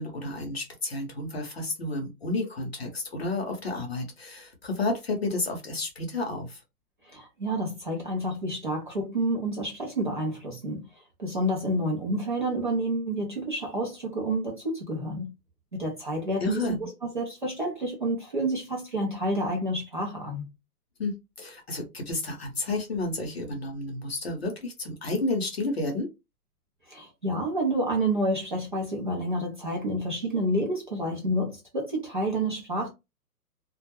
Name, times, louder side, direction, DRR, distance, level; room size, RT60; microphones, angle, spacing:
voice 1, 0.0-6.6 16.4-16.9 21.0-26.1, left 2 dB, 40° left, 0.6 m, -31 dB
voice 2, 7.0-15.3 15.7-20.5 26.9-32.9, right 1 dB, 35° right, 0.5 m, -29 dB
2.2 x 2.0 x 2.8 m
hypercardioid pair, 170°, 47 cm